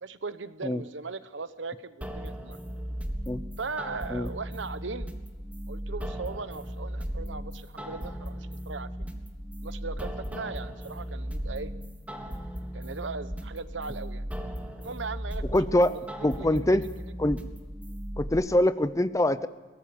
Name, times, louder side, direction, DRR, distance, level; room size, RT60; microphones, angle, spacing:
voice 1, 0.0-2.6 3.6-5.1 5.7-9.1 9.6-11.7 12.7-14.2 14.8-16.0 16.4-16.8, right 4 dB, 85° right, 13 dB, 1.0 m, -38 dB
sound 1, 2.0-18.3, equal, 10° right, 1.7 m, -37 dB
voice 2, 15.5-16.0 16.2-16.9 17.2-17.4 18.2-19.5, left 1 dB, 15° left, 14 dB, 0.6 m, -24 dB
22.5 x 18.5 x 7.0 m, 1.3 s
head